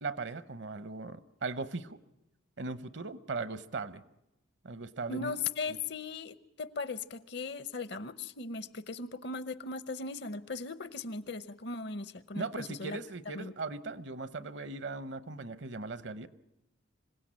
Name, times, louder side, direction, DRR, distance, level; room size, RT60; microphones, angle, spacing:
voice 1, 0.0-2.0 2.6-4.0 4.6-5.3 12.3-16.3, right 3 dB, 60° right, 15 dB, 0.8 m, -38 dB
voice 2, 5.1-13.0 13.3-13.5, left 4 dB, 55° left, 15 dB, 0.8 m, -38 dB
26.0 x 17.0 x 8.7 m, 0.91 s
head